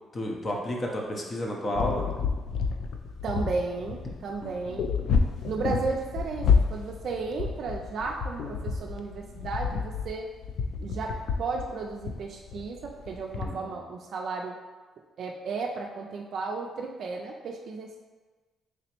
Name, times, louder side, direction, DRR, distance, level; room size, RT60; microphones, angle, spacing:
voice 1, 0.1-2.0 4.4-4.8 13.4-13.6, left 1 dB, 40° left, -1 dB, 0.6 m, -31 dB
sound 1, 1.8-13.5, left 5 dB, 75° left, 0.3 m, -29 dB
voice 2, 3.2-4.9 5.5-10.3 10.8-14.6 15.2-18.0, right 4 dB, 65° right, 1 dB, 0.3 m, -34 dB
3.3 x 3.0 x 2.9 m, 1.3 s
cardioid pair, 90°, 0 cm